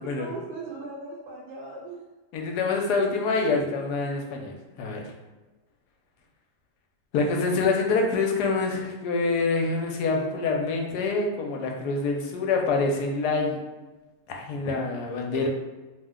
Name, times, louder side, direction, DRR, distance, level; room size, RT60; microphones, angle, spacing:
voice 1, 0.0-2.0 15.1-15.5, right 3 dB, 80° right, -4 dB, 1.2 m, -38 dB
voice 2, 2.3-5.0 7.1-13.6 14.3-15.5, left 3 dB, 75° left, 1 dB, 1.1 m, -26 dB
2.9 x 2.1 x 3.6 m, 1.2 s
omnidirectional pair, 1.8 m